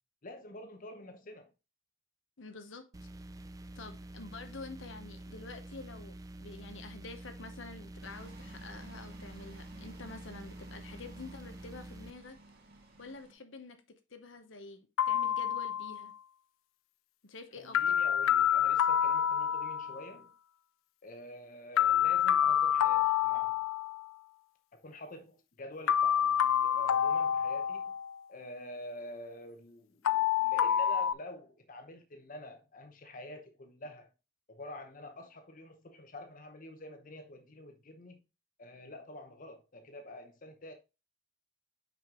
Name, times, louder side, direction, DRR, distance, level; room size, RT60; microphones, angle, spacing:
voice 1, 0.2-1.5 17.6-20.3 21.0-23.7 24.7-27.9 28.3-34.1 34.5-38.2 38.6-40.7, left 1 dB, 40° left, 0.8 m, -48 dB
voice 2, 2.4-2.9 3.8-12.4 13.0-16.1 17.2-18.0, left 3 dB, 70° left, 0.9 m, -48 dB
sound 1, 2.9-12.1, right 1 dB, 15° right, 0.4 m, -47 dB
sound 2, 8.0-13.3, right 2 dB, 50° right, 1.7 m, -55 dB
sound 3, 15.0-16.1 17.7-20.1 21.8-24.1 25.9-28.2 30.0-31.1, left 9 dB, 85° left, 0.4 m, -28 dB
5.9 x 5.2 x 3.7 m
head